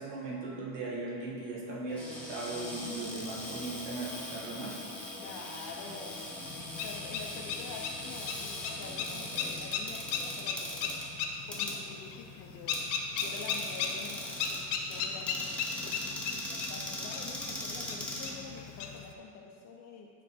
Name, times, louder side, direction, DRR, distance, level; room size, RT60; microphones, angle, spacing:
voice 1, 0.0-4.8, right 2 dB, 55° right, -4 dB, 1.6 m, -38 dB
Cupboard open or close, 1.9-18.9, left 1 dB, ahead, 0.9 m, -41 dB
voice 2, 5.2-6.2 6.8-10.7 11.5-14.6 14.9-20.1, left 5 dB, 40° left, 1 dB, 0.4 m, -47 dB
sound 1, 6.4-19.1, left 6 dB, 80° left, 0.9 m, -37 dB
9.4 x 3.4 x 4.2 m, 2.1 s
cardioid pair, 160°, 48 cm